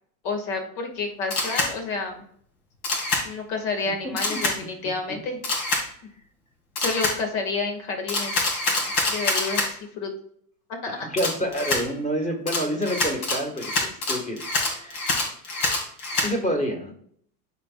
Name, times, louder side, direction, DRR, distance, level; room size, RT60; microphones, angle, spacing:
voice 1, 0.2-2.2 3.2-5.4 6.8-10.1 10.8-11.1 16.2-16.3, left 3 dB, 65° left, 4 dB, 2.1 m, -30 dB
Camera, 1.3-1.7 2.8-3.2 4.2-4.6 5.4-5.8 6.8-7.2 8.1-9.7 11.2-11.8 12.5-16.3, left 2 dB, 85° left, 2.4 m, -25 dB
voice 2, 4.0-4.4 10.9-14.4 14.6-15.0 16.2-16.9, equal, 15° left, 2 dB, 1.7 m, -28 dB
12.0 x 4.2 x 2.4 m, 0.65 s
supercardioid pair, 125°, 44 cm